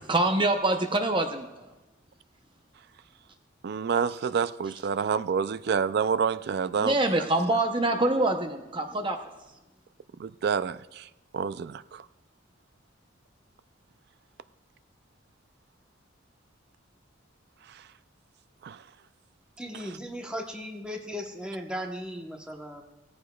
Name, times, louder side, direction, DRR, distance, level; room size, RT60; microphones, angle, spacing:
voice 1, 0.1-1.5 6.8-9.2, right 2 dB, 25° right, 0.7 m, -25 dB
voice 2, 3.6-7.3 10.2-12.0 17.7-17.8 18.6-18.8, right 6 dB, 55° right, 0.3 m, -28 dB
voice 3, 19.6-22.8, equal, 5° right, 1.0 m, -37 dB
17.0 x 14.0 x 2.3 m
head